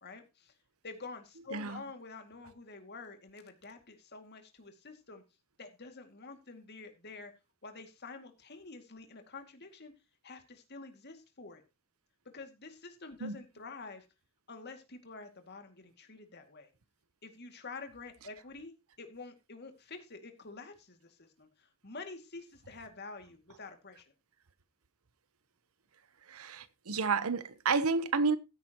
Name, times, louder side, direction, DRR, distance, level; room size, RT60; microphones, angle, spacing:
voice 1, 0.0-0.5 0.8-5.2 5.6-7.3 7.6-9.9 10.2-11.6 12.3-14.1 14.5-16.7 17.2-24.1, left 3 dB, 50° left, 2.3 m, -48 dB
voice 2, 26.3-28.4, right 4 dB, 85° right, 0.9 m, -30 dB
15.5 x 9.7 x 3.0 m
head